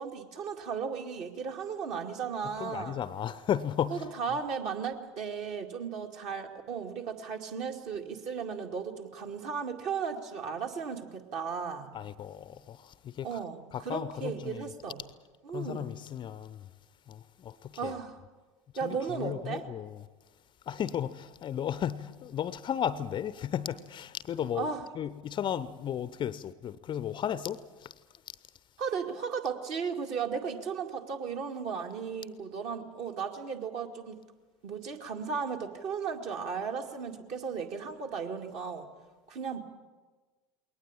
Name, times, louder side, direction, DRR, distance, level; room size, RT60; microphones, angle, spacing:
voice 1, 0.0-3.0 3.9-11.9 13.2-15.0 15.4-15.9 17.8-18.2 18.8-19.6 24.5-24.9 28.8-34.2 34.6-38.9 39.3-39.6, right 6 dB, 45° right, 2.3 m, -35 dB
voice 2, 2.6-4.1 11.9-13.4 13.7-14.6 15.5-16.7 17.1-17.9 18.8-20.0 20.7-24.7 25.0-27.9, left 9 dB, 30° left, 0.7 m, -34 dB
21.5 x 18.5 x 9.0 m
figure-of-eight pair, 75°, 16 cm